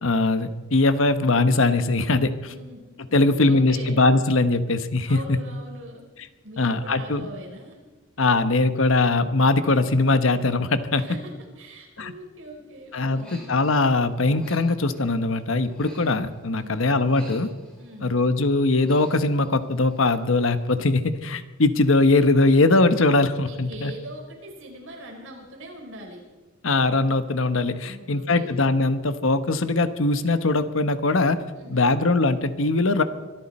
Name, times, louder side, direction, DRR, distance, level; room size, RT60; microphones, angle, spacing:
voice 1, 0.0-2.3 3.1-5.4 6.6-7.3 8.2-11.0 12.0-12.1 12.9-17.5 18.0-23.9 26.6-31.4 31.7-33.0, left 2 dB, 70° left, 11 dB, 1.1 m, -21 dB
voice 2, 2.4-4.0 5.1-6.0 6.4-7.8 10.9-13.6 16.6-16.9 17.8-18.2 23.5-26.2 27.8-28.5 31.5-31.9, right 1 dB, 70° right, 0 dB, 4.7 m, -42 dB
Human voice, 13.0-13.8 14.2-16.6 16.9-18.1 18.5-20.3 20.6-20.9, equal, 5° left, 6.4 m, -49 dB
24.0 x 13.0 x 4.3 m, 1.3 s
head